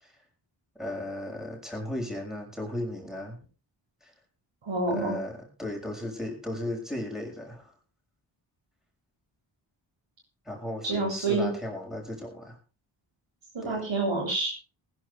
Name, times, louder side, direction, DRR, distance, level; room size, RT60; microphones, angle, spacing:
voice 1, 0.7-3.4 4.0-4.1 4.9-7.7 10.4-12.6 13.6-13.8, left 1 dB, ahead, 1 dB, 6.6 m, -36 dB
voice 2, 4.6-5.2 10.8-11.5 13.5-14.5, right 3 dB, 65° right, 0 dB, 7.7 m, -27 dB
20.5 x 11.0 x 3.5 m, 0.32 s
cardioid pair, 50°, 47 cm